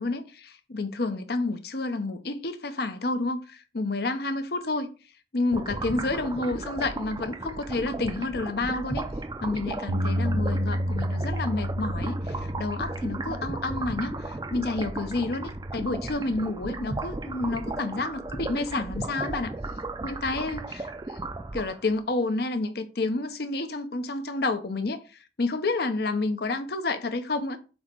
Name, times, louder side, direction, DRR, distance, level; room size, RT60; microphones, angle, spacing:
voice 1, 0.0-4.9 5.3-9.1 9.4-19.5 20.0-21.2 21.5-25.0 25.4-27.6, left 2 dB, 55° left, 0.7 m, -29 dB
sound 1, 5.5-21.9, right 2 dB, 20° right, 0.5 m, -35 dB
Bass guitar, 9.9-16.1, equal, 85° right, 0.7 m, -31 dB
7.6 x 2.9 x 4.5 m
head